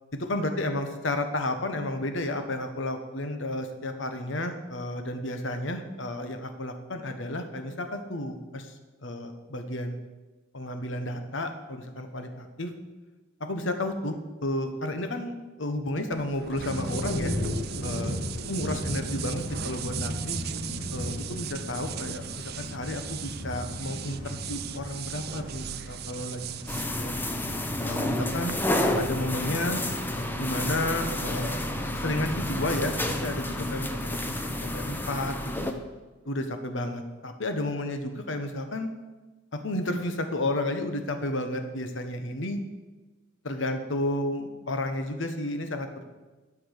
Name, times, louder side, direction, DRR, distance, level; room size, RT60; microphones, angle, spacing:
voice 1, 0.1-8.7 9.0-10.0 10.5-12.7 13.4-15.3 15.6-17.3 17.8-18.2 18.5-20.4 20.9-26.6 26.9-27.1 27.8-29.8 30.4-31.6 31.9-35.3 35.6-35.7 36.2-38.9 39.5-42.6 43.4-46.1, left 1 dB, 70° left, 7 dB, 1.3 m, -32 dB
sound 1, 16.1-28.5, right 11 dB, 55° right, 0.5 m, -39 dB
sound 2, 16.6-33.7, left 1 dB, 85° left, 2.6 m, -37 dB
sound 3, 26.7-35.7, left 1 dB, 10° left, 0.8 m, -30 dB
11.5 x 6.1 x 6.7 m, 1.2 s
head